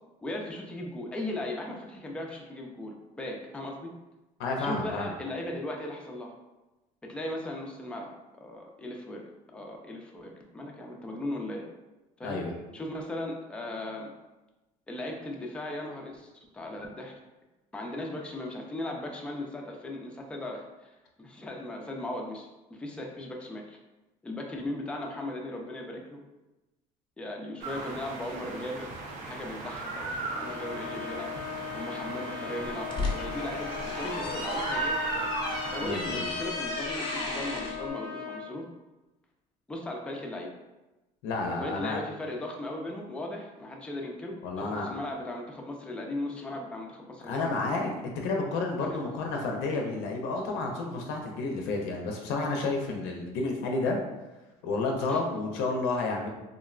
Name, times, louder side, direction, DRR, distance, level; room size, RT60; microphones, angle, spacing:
voice 1, 0.2-3.9 4.6-6.3 7.0-9.2 9.5-11.6 12.2-12.4 12.7-14.1 14.9-17.1 17.7-23.8 24.2-26.2 27.2-28.9 29.2-31.3 31.7-35.3 35.7-38.6 39.7-40.5 41.6-47.5 48.8-49.1 55.1-55.2, left 1 dB, 5° left, 0 dB, 0.4 m, -37 dB
voice 2, 4.4-5.1 12.2-12.5 35.8-36.3 41.2-42.0 44.4-44.9 47.3-47.9 48.2-54.0 54.6-56.3, left 3 dB, 85° left, 1 dB, 0.5 m, -30 dB
sound 1, 27.6-36.8, right 3 dB, 50° right, 0.5 m, -37 dB
Trumpet, 30.3-38.5, left 6 dB, 85° right, 1.2 m, -38 dB
sound 2, 32.6-37.8, left 2 dB, 30° left, 0.7 m, -34 dB
3.6 x 2.0 x 2.4 m, 1.1 s
cardioid pair, 120°, 16 cm